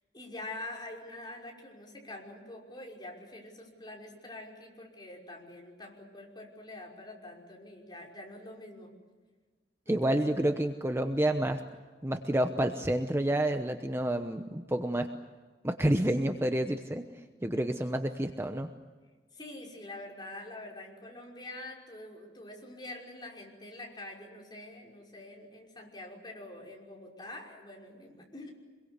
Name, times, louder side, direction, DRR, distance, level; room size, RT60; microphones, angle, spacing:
voice 1, 0.1-8.9 9.9-10.4 17.5-17.7 19.3-28.5, left 2 dB, 25° left, -1 dB, 5.7 m, -45 dB
voice 2, 9.9-11.6 12.0-15.1 15.6-17.0 17.4-18.7, right 1 dB, 15° right, 6 dB, 0.9 m, -29 dB
26.0 x 22.5 x 8.2 m, 1.4 s
head